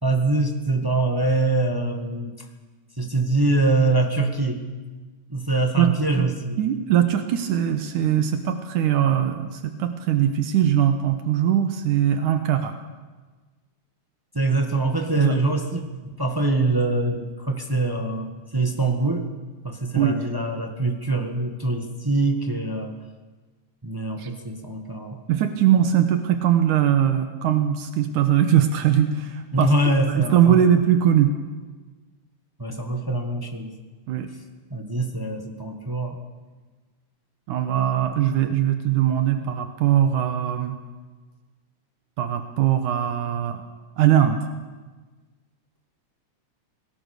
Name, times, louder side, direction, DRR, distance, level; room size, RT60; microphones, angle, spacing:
voice 1, 0.0-2.4 3.0-4.6 5.3-6.6 14.3-19.3 19.6-23.0 23.8-25.2 29.5-30.6 32.6-33.7 34.7-36.2, right 2 dB, 15° right, 3 dB, 0.9 m, -24 dB
voice 2, 6.6-12.7 15.2-15.4 19.9-20.2 24.2-24.3 25.3-29.7 30.2-31.3 34.1-34.3 37.5-40.8 42.2-43.6 44.0-44.4, right 10 dB, 80° right, 7 dB, 2.6 m, -21 dB
27.5 x 19.0 x 6.7 m, 1.3 s
omnidirectional pair, 3.6 m